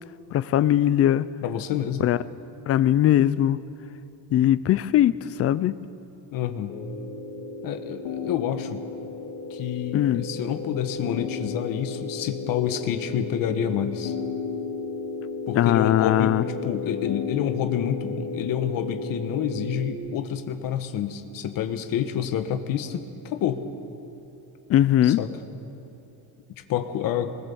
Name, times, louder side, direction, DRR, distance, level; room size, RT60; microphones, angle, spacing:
voice 1, 0.3-1.2 2.0-2.2 2.7-3.6 4.3-5.1 5.4-5.7 9.9-10.2 15.5-16.4 24.7-25.2, left 12 dB, 35° left, 16 dB, 0.4 m, -20 dB
voice 2, 1.4-2.1 6.3-6.8 7.6-8.9 9.5-14.1 15.5-16.4 16.6-23.6 25.0-25.3 26.7-27.4, left 9 dB, 55° left, 8 dB, 1.2 m, -28 dB
sound 1, 6.7-19.9, left 4 dB, 85° left, 2.6 m, -34 dB
21.0 x 20.0 x 7.0 m, 2.8 s
cardioid pair, 175°, 41 cm